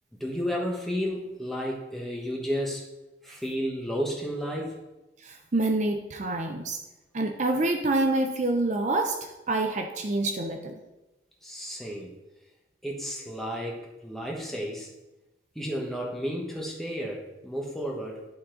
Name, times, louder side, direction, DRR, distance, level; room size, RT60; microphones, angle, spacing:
voice 1, 0.1-2.9 3.2-4.8 11.4-12.2 12.8-14.9 15.5-18.3, equal, ahead, -2 dB, 1.1 m, -32 dB
voice 2, 5.2-6.8 7.1-9.2 9.5-10.8, right 2 dB, 40° right, 4 dB, 0.5 m, -27 dB
11.5 x 4.1 x 3.8 m, 1.0 s
head